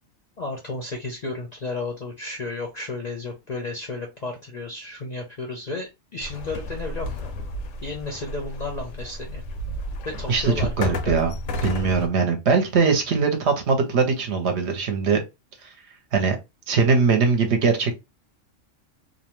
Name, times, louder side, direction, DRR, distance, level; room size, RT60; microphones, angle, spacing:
voice 1, 0.4-7.3 7.8-9.4 10.0-11.1, left 2 dB, 50° left, 0.5 m, -33 dB
sound 1, 6.2-12.1, left 1 dB, 85° left, 1.0 m, -32 dB
voice 2, 10.3-11.3 11.6-15.2 16.1-16.4 16.7-18.0, right 5 dB, 65° right, 0.9 m, -21 dB
2.6 x 2.1 x 3.0 m
omnidirectional pair, 1.3 m